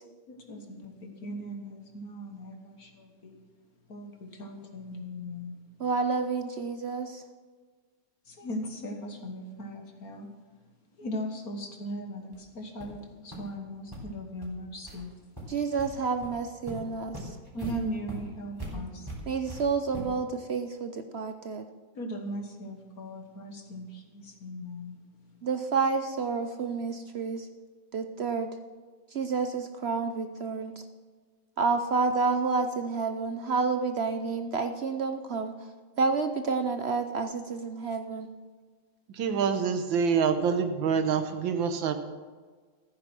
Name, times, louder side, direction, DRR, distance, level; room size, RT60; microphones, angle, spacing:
voice 1, 0.3-3.4 3.9-5.6 8.3-10.3 11.0-15.1 15.5-15.6 17.5-19.1 22.0-25.0, equal, 50° left, 4 dB, 1.8 m, -38 dB
voice 2, 5.8-7.2 15.5-17.3 19.3-21.6 25.4-27.5 27.9-28.5 29.1-30.7 31.6-35.5 36.0-38.3, right 4 dB, 70° right, 8 dB, 0.6 m, -29 dB
sound 1, 12.3-12.4 12.8-13.0 13.3-13.4 13.9-14.0 14.4-14.5 14.9-15.0 15.4-15.9 16.2-16.3 16.7-20.3, equal, 10° right, 3.7 m, -41 dB
voice 3, 39.1-42.0, right 6 dB, 85° right, 8 dB, 1.8 m, -26 dB
14.5 x 9.9 x 6.2 m, 1.5 s
omnidirectional pair, 2.0 m